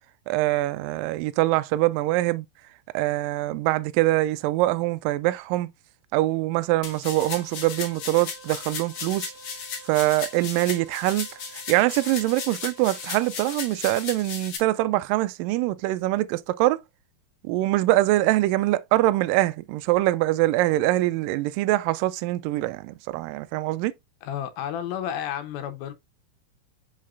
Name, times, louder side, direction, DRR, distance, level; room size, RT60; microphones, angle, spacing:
voice 1, 0.3-2.5 2.9-5.7 6.1-9.3 9.9-11.3 11.5-16.8 17.4-23.9, right 17 dB, 80° right, 2.0 m, -24 dB
sound 1, 6.8-14.6, left 5 dB, 55° left, 1.6 m, -36 dB
Wind instrument woodwind instrument, 7.2-13.6, right 4 dB, 60° right, 2.3 m, -50 dB
voice 2, 24.2-25.9, left 10 dB, 80° left, 2.8 m, -31 dB
6.5 x 5.7 x 2.5 m
omnidirectional pair, 4.3 m